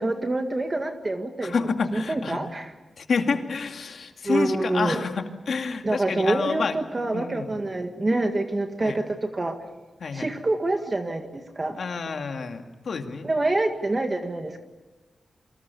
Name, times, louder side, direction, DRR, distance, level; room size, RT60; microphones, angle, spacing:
voice 1, 0.0-2.7 4.2-5.0 5.8-9.6 10.1-11.8 13.2-14.6, right 2 dB, 25° right, 5 dB, 1.8 m, -26 dB
voice 2, 1.4-2.4 3.0-6.8 7.1-7.5 8.8-9.0 10.0-10.3 11.7-13.3, left 5 dB, 65° left, 5 dB, 2.4 m, -28 dB
28.5 x 24.0 x 7.0 m, 1.2 s
wide cardioid pair, 130°, 0 cm